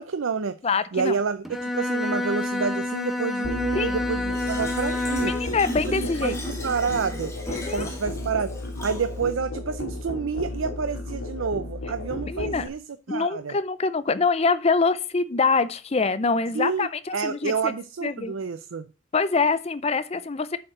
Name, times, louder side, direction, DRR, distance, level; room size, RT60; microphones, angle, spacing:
voice 1, 0.0-0.6 0.9-5.3 6.0-7.3 7.7-8.5 8.8-12.8 13.1-13.5 16.5-18.9, right 5 dB, 85° right, 0.5 m, -29 dB
voice 2, 0.6-1.1 3.7-4.0 5.3-6.4 7.5-7.9 12.3-12.7 13.1-17.7 18.0-18.4 19.1-20.6, left 4 dB, 30° left, 0.5 m, -25 dB
Bowed string instrument, 1.4-5.6, left 2 dB, ahead, 0.8 m, -28 dB
Musical instrument, 3.4-12.7, left 1 dB, 85° left, 2.2 m, -34 dB
Fill (with liquid), 4.3-9.3, left 1 dB, 15° left, 1.7 m, -38 dB
7.4 x 4.5 x 6.6 m
head